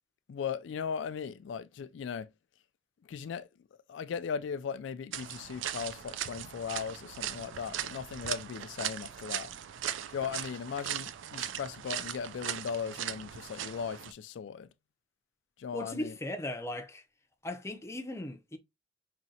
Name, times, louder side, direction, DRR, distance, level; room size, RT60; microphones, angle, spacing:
voice 1, 0.3-2.3 3.0-3.5 3.9-9.5 10.1-14.7 15.6-16.1, left 6 dB, 75° left, 0.3 m, -38 dB
sound 1, 5.1-14.1, right 10 dB, 85° right, 0.4 m, -39 dB
voice 2, 15.7-17.0 17.4-18.6, left 1 dB, 15° left, 0.5 m, -37 dB
5.1 x 2.8 x 2.7 m
head